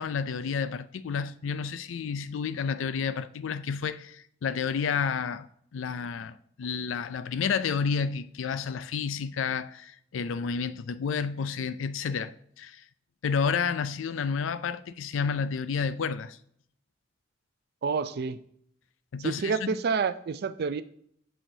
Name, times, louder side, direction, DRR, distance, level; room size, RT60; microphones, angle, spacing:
voice 1, 0.0-5.5 5.7-12.8 13.2-16.4 19.1-19.6, left 6 dB, 80° left, 0.4 m, -30 dB
voice 2, 17.8-18.4 19.2-20.8, right 5 dB, 55° right, 0.4 m, -28 dB
8.9 x 6.3 x 2.7 m
head